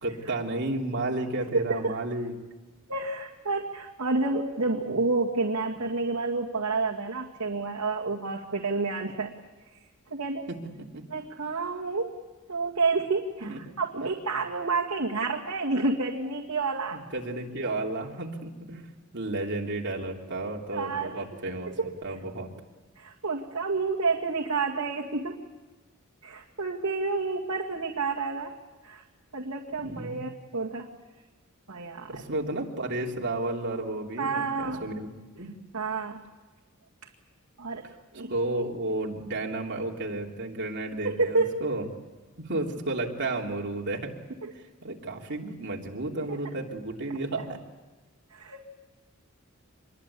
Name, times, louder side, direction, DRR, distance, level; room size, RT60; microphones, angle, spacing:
voice 1, 0.0-2.3 10.5-11.0 13.4-13.7 16.9-18.9 19.1-21.7 22.0-22.5 29.8-30.2 32.1-35.1 35.4-35.5 38.3-41.9 42.4-47.6, right 2 dB, 55° right, 0 dB, 3.3 m, -32 dB
voice 2, 1.5-2.0 2.9-9.3 10.1-10.5 11.1-12.2 12.5-17.0 20.7-21.2 21.8-21.9 23.0-25.4 26.2-28.5 28.8-29.0 29.3-30.9 31.7-32.2 34.2-34.9 35.7-36.2 37.6-37.9 38.1-38.3 41.0-41.5 46.3-46.4 48.3-48.7, right 3 dB, 75° right, -1 dB, 2.1 m, -29 dB
26.0 x 22.0 x 8.5 m, 1.2 s
head